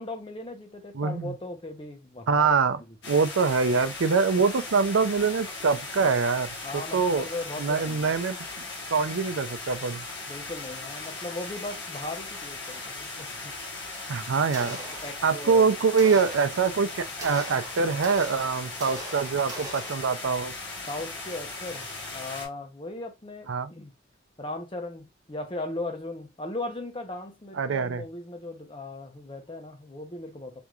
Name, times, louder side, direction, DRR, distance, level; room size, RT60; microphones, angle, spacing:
voice 1, 0.0-2.5 2.9-3.0 6.6-8.2 10.3-13.5 14.8-15.7 20.9-23.9 24.4-30.6, left 2 dB, 25° left, 0.7 m, -38 dB
voice 2, 0.9-1.3 2.3-2.8 3.1-7.3 7.6-8.4 8.9-10.1 14.1-14.8 15.2-20.5 23.5-23.7 27.6-28.0, right 5 dB, 85° right, 0.5 m, -24 dB
sound 1, 3.0-22.5, left 3 dB, 60° left, 1.3 m, -38 dB
sound 2, 14.5-15.6 16.0-20.5, right 2 dB, 15° right, 0.8 m, -41 dB
3.4 x 3.0 x 2.4 m
head